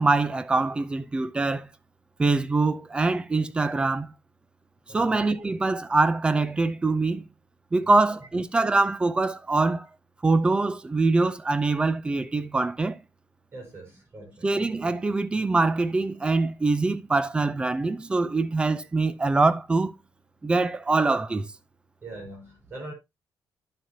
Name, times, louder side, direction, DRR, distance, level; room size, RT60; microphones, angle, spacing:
voice 1, 0.0-1.7 2.2-4.1 4.9-7.3 7.7-9.9 10.2-13.0 14.4-19.9 20.4-21.5, right 3 dB, 15° right, 0.6 m, -24 dB
voice 2, 4.9-5.3 7.8-8.2 13.5-14.5 22.0-22.9, right 2 dB, 35° right, 5.1 m, -42 dB
10.5 x 7.2 x 2.8 m
cardioid pair, 175°, 7 cm